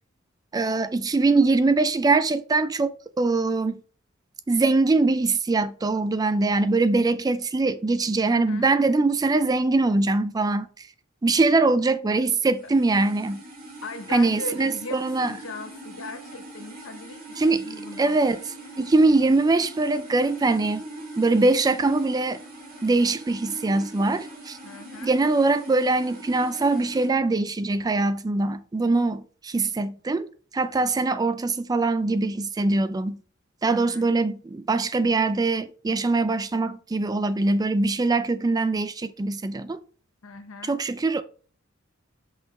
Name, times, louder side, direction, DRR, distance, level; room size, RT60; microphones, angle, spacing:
voice 1, 0.5-3.8 4.5-10.9 11.2-13.4 14.1-15.3 17.4-17.6 18.0-20.8 21.2-22.4 22.8-24.6 25.0-30.3 30.5-33.2 33.6-39.8 40.6-41.2, right 3 dB, 20° right, 0.3 m, -22 dB
voice 2, 8.3-8.7 13.8-18.2 24.6-25.1 33.7-34.1 40.2-40.8, left 2 dB, 85° left, 0.9 m, -39 dB
sound 1, 12.4-27.1, right 1 dB, 45° right, 2.3 m, -42 dB
5.9 x 5.5 x 3.2 m
head